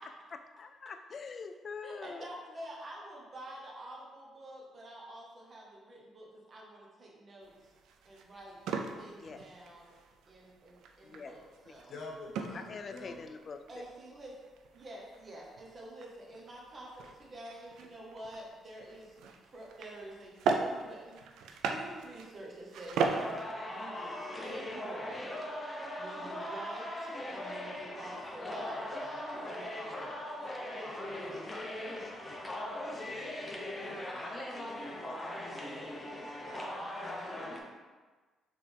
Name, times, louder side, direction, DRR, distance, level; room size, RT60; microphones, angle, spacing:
voice 1, 0.5-2.3 9.2-9.4 11.0-11.4 11.7-11.8 12.5-13.6, left 5 dB, 45° left, 7 dB, 0.3 m, -44 dB
voice 2, 1.8-7.7 8.0-8.6 9.0-9.9 10.3-11.9 13.7-14.3 14.7-21.3 21.7-23.3 23.7-25.3 26.0-30.2 30.8-31.5 31.9-32.1 34.6-34.7, right 1 dB, 40° right, -3 dB, 1.0 m, -48 dB
sound 1, 7.4-23.5, right 4 dB, 85° right, 0.3 m, -39 dB
voice 3, 11.9-13.3 32.2-32.4 33.1-37.7, left 2 dB, 65° left, -2 dB, 0.9 m, -50 dB
sound 2, 23.0-37.6, left 1 dB, 20° left, 0.7 m, -40 dB
4.1 x 3.3 x 3.3 m, 1.3 s
cardioid pair, 90°, 0 cm